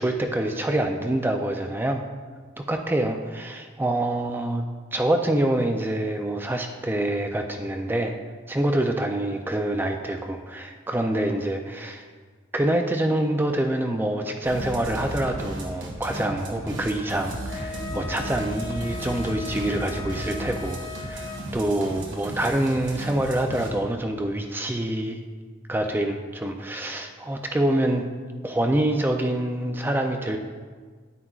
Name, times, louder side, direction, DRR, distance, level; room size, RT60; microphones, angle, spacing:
voice 1, 0.0-2.0 2.6-4.6 4.9-8.2 8.5-12.1 12.5-25.2 25.7-28.1 28.4-30.4, right 1 dB, 10° right, 4 dB, 0.4 m, -26 dB
sound 1, 14.4-23.7, right 1 dB, 85° right, 1.4 m, -35 dB
Wind instrument woodwind instrument, 17.5-21.4, left 5 dB, 80° left, 1.6 m, -38 dB
9.6 x 8.9 x 2.4 m, 1.5 s
head